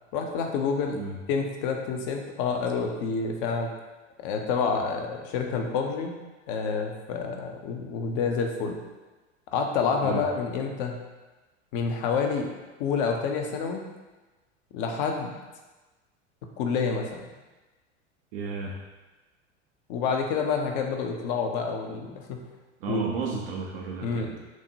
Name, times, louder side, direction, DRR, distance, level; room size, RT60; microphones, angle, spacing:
voice 1, 0.1-3.7 4.2-6.2 6.5-8.8 9.5-11.0 11.7-12.5 12.8-13.9 14.7-15.3 16.6-17.2 19.9-22.5 22.9-23.2 24.0-24.3, left 5 dB, 45° left, 3 dB, 0.7 m, -28 dB
voice 2, 18.3-18.8 22.8-24.4, right 5 dB, 50° right, -1 dB, 0.5 m, -33 dB
6.0 x 2.1 x 2.7 m, 1.2 s
figure-of-eight pair, 85°, 36 cm